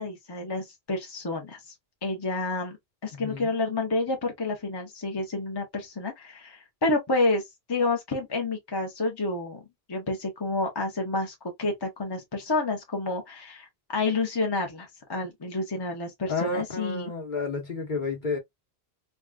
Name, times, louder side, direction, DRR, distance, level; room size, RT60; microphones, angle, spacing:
voice 1, 0.0-1.6 2.0-2.8 3.0-7.4 7.7-9.6 9.9-13.7 13.9-17.1, left 2 dB, 25° left, 0.7 m, -29 dB
voice 2, 3.1-3.6 16.3-18.4, left 3 dB, 50° left, 1.2 m, -31 dB
3.6 x 2.3 x 2.3 m
omnidirectional pair, 1.1 m